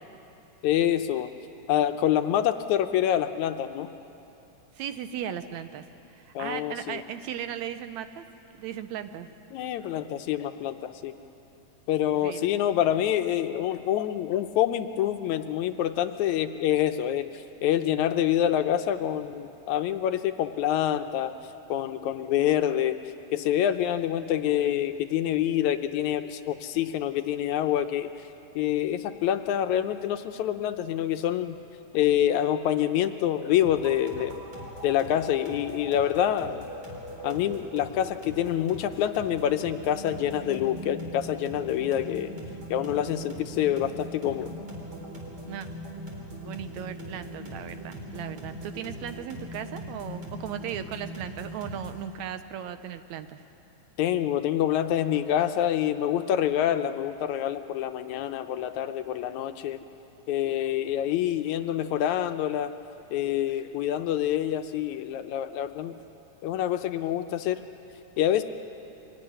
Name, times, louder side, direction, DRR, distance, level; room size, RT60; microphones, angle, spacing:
voice 1, 0.6-1.3 1.7-3.9 6.4-7.0 9.5-11.1 11.9-21.3 21.7-23.0 23.3-28.1 28.6-31.6 31.9-34.4 34.8-36.7 37.2-42.3 42.7-44.5 54.0-59.8 60.3-62.8 63.1-66.0 66.4-67.6 68.2-68.4, left 11 dB, 75° left, 9 dB, 2.0 m, -26 dB
voice 2, 4.8-5.8 6.1-8.3 8.6-9.3 12.2-12.5 45.5-45.7 46.4-53.4, right 9 dB, 75° right, 10 dB, 1.9 m, -37 dB
sound 1, 33.6-52.1, equal, 45° right, 4.8 m, -40 dB
25.0 x 18.0 x 9.9 m, 2.9 s
omnidirectional pair, 3.6 m